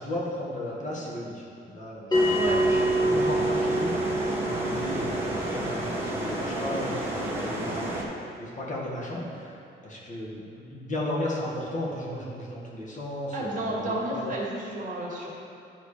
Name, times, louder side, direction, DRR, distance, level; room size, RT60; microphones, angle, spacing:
voice 1, 0.0-8.1 8.4-14.3, left 1 dB, 40° left, -5 dB, 1.9 m, -35 dB
Bell, 2.1-7.2, right 1 dB, 20° left, 1.7 m, -27 dB
sound 1, 2.1-8.0, right 1 dB, 10° right, 1.7 m, -31 dB
voice 2, 2.3-2.6 13.3-15.3, right 1 dB, 40° right, -4 dB, 1.9 m, -31 dB
11.0 x 4.0 x 5.0 m, 2.5 s
cardioid pair, 90°, 20 cm